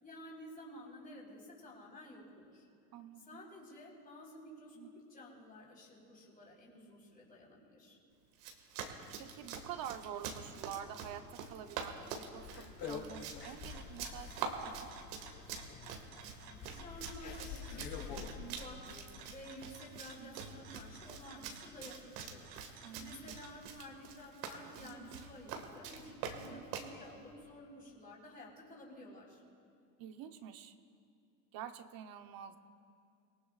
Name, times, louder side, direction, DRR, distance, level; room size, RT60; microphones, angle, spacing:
voice 1, 0.0-2.7 3.3-8.0 16.5-22.7 23.0-29.4, left 1 dB, 20° left, -3 dB, 4.4 m, -52 dB
voice 2, 2.9-3.4 4.8-4.9 9.2-15.0 18.2-18.6 20.2-20.4 22.8-23.3 24.8-25.1 26.5-26.6 30.0-30.7 31.5-32.6, right 10 dB, 50° right, 8 dB, 1.0 m, -48 dB
Run, 8.3-26.9, right 6 dB, 85° right, 1.9 m, -45 dB
sound 1, 12.3-19.2, left 6 dB, 55° left, 3.1 m, -48 dB
sound 2, 12.8-23.7, right 5 dB, 65° right, 2.6 m, -56 dB
26.0 x 19.0 x 2.5 m, 2.5 s
supercardioid pair, 120°, 47 cm